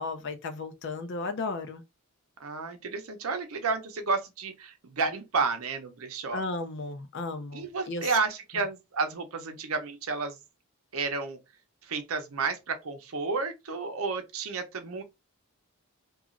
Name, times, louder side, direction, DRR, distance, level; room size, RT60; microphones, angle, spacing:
voice 1, 0.0-1.8 6.3-8.1, left 3 dB, 55° left, 0.5 m, -34 dB
voice 2, 2.4-6.4 7.5-10.4 10.9-11.4 11.8-15.0, right 4 dB, 70° right, 0.7 m, -31 dB
2.9 x 2.3 x 2.5 m
head